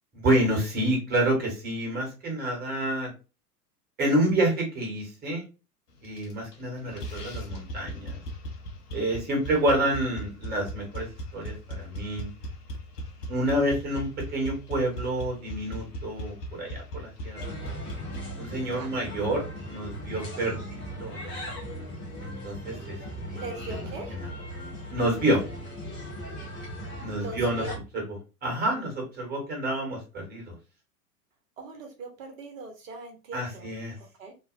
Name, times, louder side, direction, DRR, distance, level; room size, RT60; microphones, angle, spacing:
voice 1, 0.1-3.1 4.0-5.4 6.0-8.1 8.9-11.1 11.3-12.3 13.3-17.6 18.4-21.2 22.2-22.9 23.3-24.3 24.9-25.4 27.0-27.6 27.9-28.0 28.4-30.5 33.3-33.9, right 1 dB, 20° right, -1 dB, 1.3 m, -28 dB
sound 1, 6.0-6.6 6.9-18.2, right 1 dB, 80° left, 0.7 m, -38 dB
sound 2, 17.3-27.7, equal, 10° left, 0.3 m, -38 dB
voice 2, 23.3-24.2 27.2-27.7 31.6-34.3, right 3 dB, 55° right, 2 dB, 1.1 m, -41 dB
2.7 x 2.1 x 2.5 m, 0.30 s
figure-of-eight pair, 95°, 46 cm